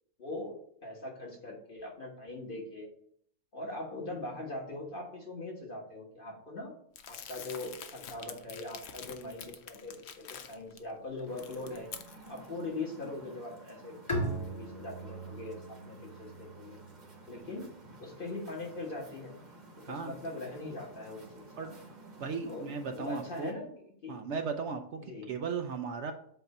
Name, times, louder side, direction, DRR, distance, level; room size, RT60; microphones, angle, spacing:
voice 1, 0.2-0.6 0.8-2.9 3.5-6.7 7.1-11.9 12.3-16.8 17.3-17.7 18.0-19.4 19.9-21.7 22.4-23.7 24.0-24.2 25.0-25.3, left 2 dB, 40° left, -1 dB, 1.6 m, -41 dB
Crumpling crinkling, 7.0-10.8 11.2-12.5, left 8 dB, 60° left, 0.8 m, -47 dB
sound 1, 11.3-23.5, right 2 dB, 35° right, 1.1 m, -53 dB
Bowed string instrument, 14.1-17.6, right 1 dB, 25° left, 1.2 m, -39 dB
voice 2, 22.2-23.5 24.1-26.1, right 5 dB, 65° right, 6 dB, 0.8 m, -36 dB
7.8 x 2.7 x 5.4 m, 0.66 s
omnidirectional pair, 1.4 m